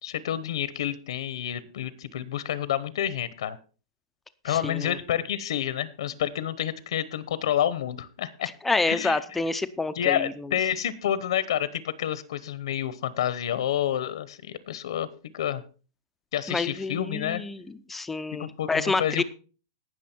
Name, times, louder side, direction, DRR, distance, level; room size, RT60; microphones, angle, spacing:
voice 1, 0.0-3.6 4.4-8.5 8.9-9.2 10.0-15.1 15.3-15.6 16.3-17.4 18.3-19.2, left 10 dB, 70° left, 17 dB, 0.9 m, -29 dB
voice 2, 4.5-5.0 8.6-10.5 16.5-19.2, left 3 dB, 5° left, 11 dB, 0.5 m, -28 dB
18.0 x 6.4 x 4.4 m, 0.36 s
supercardioid pair, 170°, 3 cm